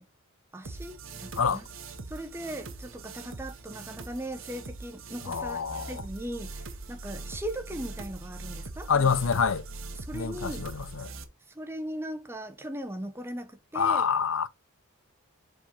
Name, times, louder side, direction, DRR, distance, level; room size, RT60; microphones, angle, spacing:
voice 1, 0.5-1.7 2.1-9.4 9.9-10.7 11.5-14.1, right 1 dB, 10° right, 0.9 m, -39 dB
sound 1, 0.6-11.2, right 3 dB, 70° right, 1.0 m, -42 dB
voice 2, 5.3-6.0 8.9-9.6 10.1-11.1 13.7-14.5, left 6 dB, 70° left, 0.6 m, -27 dB
5.0 x 4.4 x 5.5 m
head